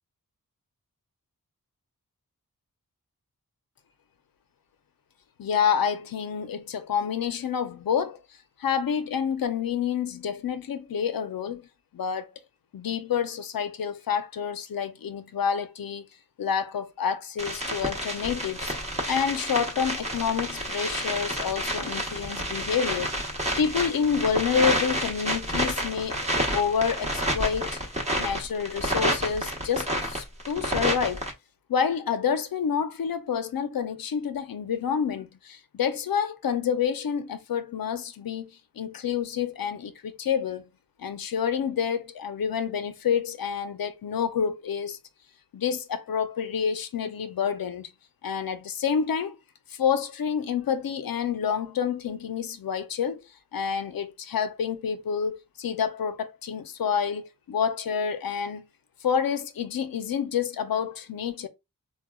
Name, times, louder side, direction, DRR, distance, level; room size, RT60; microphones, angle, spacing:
voice 1, 5.4-8.2 8.6-11.6 11.9-12.3 12.7-16.1 16.4-18.7 19.1-23.1 23.6-26.2 26.5-27.8 28.2-31.3 31.7-40.6 41.0-45.0 45.5-47.9 48.2-49.4 49.7-53.2 53.5-58.6 59.0-61.5, left 7 dB, 90° left, 0.6 m, -28 dB
sound 1, 17.4-31.3, equal, 20° right, 1.0 m, -29 dB
4.8 x 2.2 x 2.2 m
wide cardioid pair, 95°, 34 cm